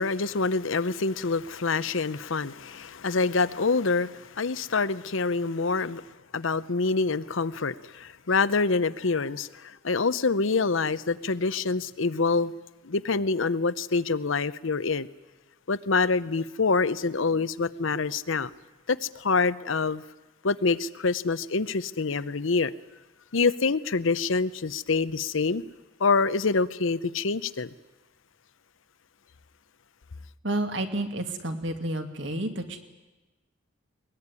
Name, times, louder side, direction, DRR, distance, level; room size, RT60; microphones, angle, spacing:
voice 1, 0.0-6.1 6.3-12.5 12.8-15.1 15.7-18.5 18.9-20.0 20.4-22.7 23.3-25.6 26.0-27.7, left 4 dB, 75° left, 0.8 m, -26 dB
voice 2, 30.4-32.8, right 1 dB, 60° right, 2.5 m, -30 dB
21.5 x 21.0 x 9.8 m
head